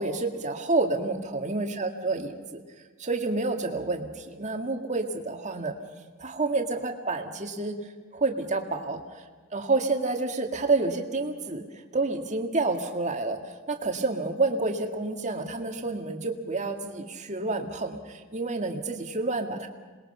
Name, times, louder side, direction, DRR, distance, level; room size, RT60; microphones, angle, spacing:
voice 1, 0.0-2.6 3.0-5.7 6.2-7.8 8.1-9.2 9.5-19.7, right 3 dB, 35° right, 4 dB, 1.9 m, -29 dB
27.0 x 21.0 x 5.6 m, 1.4 s
head